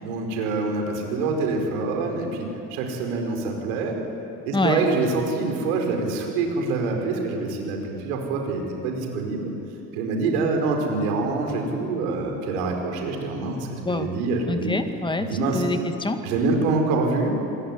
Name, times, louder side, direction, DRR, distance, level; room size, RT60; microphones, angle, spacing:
voice 1, 0.0-4.0 4.4-9.5 9.9-14.7 15.2-15.6 16.2-17.3, right 3 dB, 65° right, 2 dB, 5.1 m, -25 dB
voice 2, 4.5-4.9 13.9-14.2 14.5-16.3, left 2 dB, 10° left, 8 dB, 2.1 m, -26 dB
27.5 x 21.0 x 9.7 m, 2.8 s
figure-of-eight pair, 60°, 49 cm